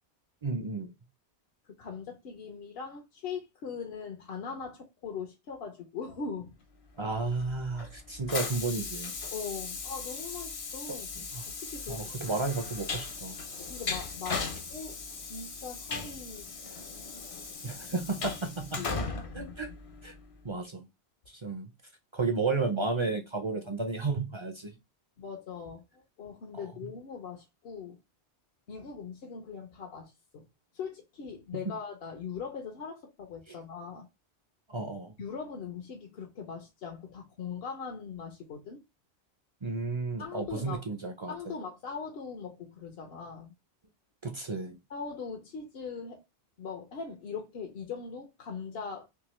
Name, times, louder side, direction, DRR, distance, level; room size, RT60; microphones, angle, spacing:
voice 1, 0.4-0.9 7.0-9.1 10.9-11.0 11.3-11.4 11.9-13.4 17.6-19.0 19.3-19.7 20.0-20.1 20.4-20.9 21.3-21.7 22.1-24.7 26.5-26.7 33.5-33.6 34.7-35.1 39.6-41.5 44.2-44.8, right 3 dB, 40° right, 0.4 m, -33 dB
voice 2, 1.8-6.5 9.3-12.3 13.7-16.5 18.8-19.5 25.2-28.0 28.7-30.4 30.7-34.1 35.2-38.8 40.2-40.9 41.3-43.5 44.9-46.2 46.6-49.1, left 5 dB, 65° left, 0.9 m, -41 dB
Train, 7.1-20.3, left 4 dB, 45° left, 0.5 m, -38 dB
3.7 x 2.8 x 3.0 m
omnidirectional pair, 1.1 m